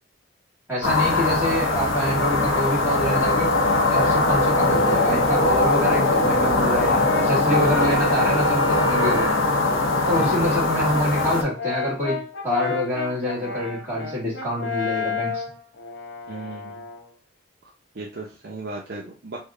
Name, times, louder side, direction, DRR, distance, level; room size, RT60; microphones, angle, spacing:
voice 1, 0.7-3.5 3.9-9.4 10.1-12.2 12.4-15.4, left 1 dB, 10° right, -7 dB, 1.9 m, -26 dB
sound 1, 0.8-11.4, left 2 dB, 85° left, 0.8 m, -21 dB
Brass instrument, 7.0-9.5 10.1-17.1, left 2 dB, 60° left, 0.8 m, -31 dB
voice 2, 7.5-8.0 10.0-10.6 16.3-16.8 17.9-19.4, right 3 dB, 50° right, -2 dB, 0.6 m, -34 dB
3.4 x 2.1 x 3.7 m, 0.34 s
head